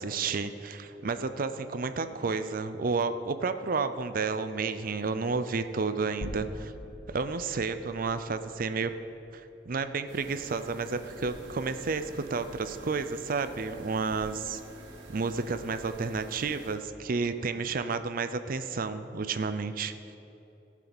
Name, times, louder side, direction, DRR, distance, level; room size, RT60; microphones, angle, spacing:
voice 1, 0.0-6.7 7.1-8.9 9.3-14.6 15.1-19.9, right 4 dB, 55° right, 11 dB, 0.5 m, -31 dB
sound 1, 6.2-10.4, left 1 dB, 40° left, 1.2 m, -44 dB
sound 2, 10.1-16.7, right 2 dB, 80° right, 1.9 m, -48 dB
17.0 x 7.3 x 4.1 m, 2.9 s
head